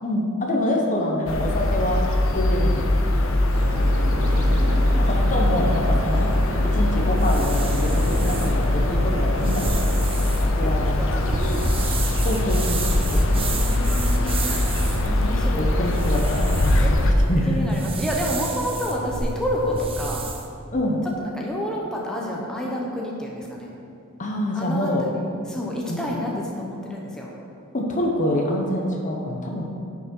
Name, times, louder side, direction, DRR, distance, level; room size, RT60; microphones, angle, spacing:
voice 1, 0.0-2.0 2.3-3.4 5.0-6.3 6.7-11.0 12.2-13.5 15.3-17.8 20.7-21.0 24.2-25.1 25.9-26.0 27.7-29.6, left 1 dB, 35° left, 0 dB, 1.0 m, -26 dB
sound 1, 1.3-17.1, left 1 dB, 65° left, 0.8 m, -21 dB
sound 2, 3.5-9.7, right 1 dB, 80° right, 0.8 m, -32 dB
voice 2, 3.8-5.1 10.6-12.1 13.2-14.4 15.0-15.8 16.8-16.9 17.5-20.2 21.2-23.7 24.5-25.1 25.5-27.3, equal, 5° left, -3 dB, 0.9 m, -30 dB
sound 3, 7.2-20.5, right 3 dB, 25° right, 0.7 m, -31 dB
9.9 x 6.0 x 4.5 m, 2.7 s
head